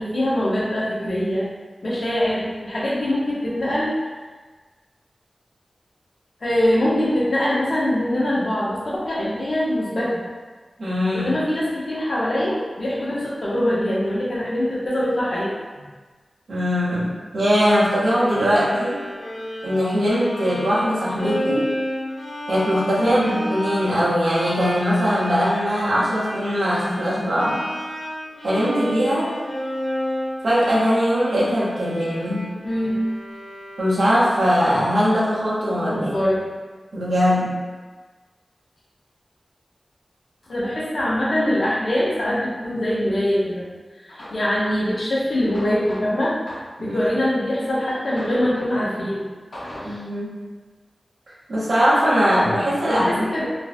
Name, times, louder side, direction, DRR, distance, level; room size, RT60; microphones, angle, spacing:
voice 1, 0.0-1.4 1.8-3.9 6.4-10.2 11.1-15.5 21.2-21.3 23.0-23.4 32.6-33.0 35.7-36.4 40.5-43.6 44.0-49.3 49.5-50.0 52.9-53.5, left 1 dB, 65° left, -7 dB, 0.6 m, -23 dB
voice 2, 10.8-11.4 16.5-19.0 19.6-21.7 22.5-27.6 28.4-29.4 30.4-32.5 33.8-36.1 36.9-37.6 46.8-47.1 49.8-50.4 51.5-53.3, equal, 85° right, -9 dB, 0.6 m, -21 dB
Bowed string instrument, 18.1-34.2, equal, 85° left, 0.9 m, -32 dB
2.5 x 2.1 x 2.4 m, 1.4 s
cardioid pair, 40°, 0 cm